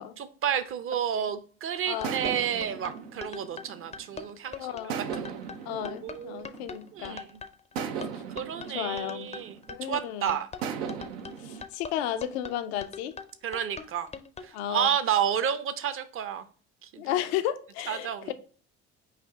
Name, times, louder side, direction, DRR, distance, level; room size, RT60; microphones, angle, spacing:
voice 1, 0.2-6.5 6.9-7.3 8.3-9.6 9.9-10.5 13.4-14.1 14.4-16.4 16.8-17.2 17.9-18.3, right 9 dB, 45° right, 0.6 m, -31 dB
sound 1, 1.8-14.5, left 5 dB, 20° left, 0.4 m, -42 dB
sound 2, 2.0-4.3 4.9-7.0 7.7-10.0 10.6-11.6, right 7 dB, 85° right, 0.5 m, -37 dB
voice 2, 4.6-5.0 5.7-7.2 8.7-9.3 9.7-10.4 11.4-13.1 14.5-14.9 17.0-18.3, left 11 dB, 85° left, 0.5 m, -33 dB
4.9 x 2.6 x 3.4 m
hypercardioid pair, 65°, 31 cm